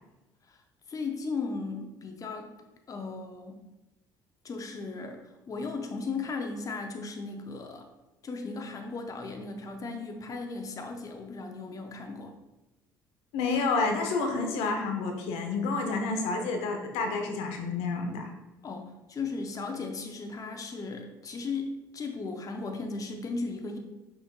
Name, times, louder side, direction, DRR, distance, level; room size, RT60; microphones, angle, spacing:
voice 1, 0.9-2.5 2.9-3.6 4.4-7.9 8.2-12.3 18.6-23.8, left 4 dB, 30° left, 4 dB, 0.6 m, -36 dB
voice 2, 13.3-18.3, left 3 dB, 70° left, 3 dB, 0.8 m, -29 dB
5.8 x 4.0 x 2.3 m, 1.0 s
hypercardioid pair, 55°, 11 cm